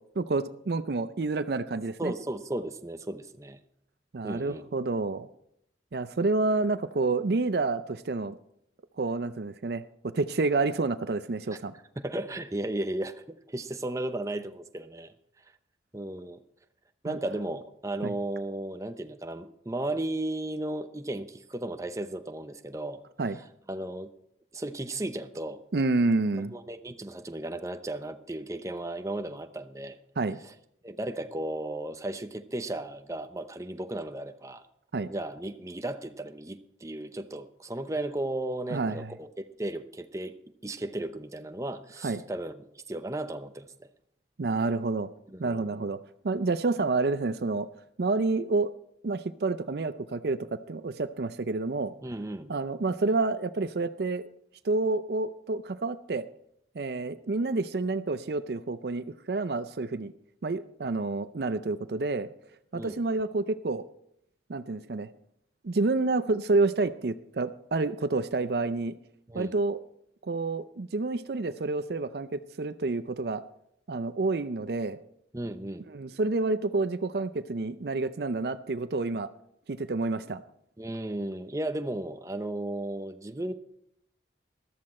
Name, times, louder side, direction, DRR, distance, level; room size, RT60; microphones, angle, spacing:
voice 1, 0.2-2.1 4.1-5.3 5.9-8.4 9.0-9.8 10.1-11.7 17.0-17.2 18.0-18.1 23.2-23.4 25.7-26.5 30.2-30.4 34.9-35.1 38.7-39.1 42.0-42.2 44.4-45.1 45.4-46.0 46.2-47.7 48.0-48.7 49.0-51.9 52.5-54.2 54.6-56.3 56.7-60.1 60.4-62.3 62.7-63.8 64.5-65.1 65.6-68.9 69.3-69.8 70.2-73.4 73.9-75.0 75.9-79.3 79.7-80.4, right 3 dB, 60° right, 13 dB, 0.5 m, -29 dB
voice 2, 2.0-3.6 4.2-4.7 12.0-15.1 15.9-16.4 17.0-23.0 23.7-24.1 24.5-25.6 26.3-30.0 30.4-30.5 30.8-34.6 35.1-40.3 40.6-43.9 45.3-45.9 52.0-52.5 62.7-63.0 69.3-69.5 75.3-75.9 80.8-83.5, right 1 dB, 15° right, 8 dB, 0.7 m, -35 dB
14.0 x 13.0 x 4.3 m, 0.74 s
head